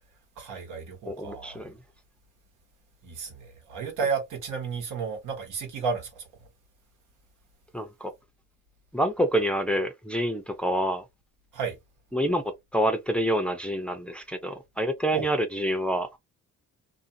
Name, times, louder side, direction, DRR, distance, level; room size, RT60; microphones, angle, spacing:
voice 1, 0.4-1.7 3.0-6.2 11.5-11.7 15.1-15.3, right 5 dB, 85° right, 1.2 m, -32 dB
voice 2, 1.1-1.8 7.7-8.1 8.9-11.0 12.1-12.4 12.7-16.2, equal, 5° left, 0.5 m, -27 dB
2.5 x 2.5 x 2.6 m
cardioid pair, 90°, 30 cm